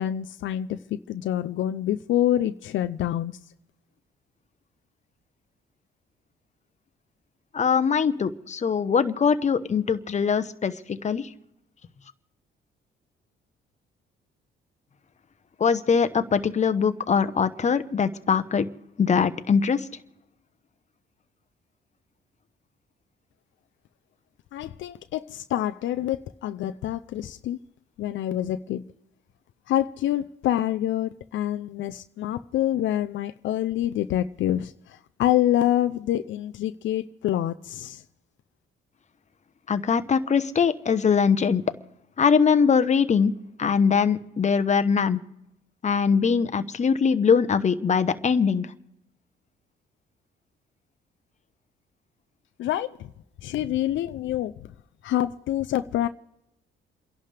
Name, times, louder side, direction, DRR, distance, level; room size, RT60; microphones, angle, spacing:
voice 1, 0.0-3.3 24.5-27.6 28.0-28.8 29.7-38.0 52.6-53.0 53.4-54.5 55.0-56.1, left 12 dB, 75° left, 0.5 m, -26 dB
voice 2, 7.5-11.3 15.6-18.7 19.0-19.8 39.7-41.6 42.2-43.3 43.6-45.2 45.8-48.7, left 6 dB, 35° left, 0.9 m, -22 dB
29.0 x 11.0 x 3.4 m
cardioid pair, 90°, 20 cm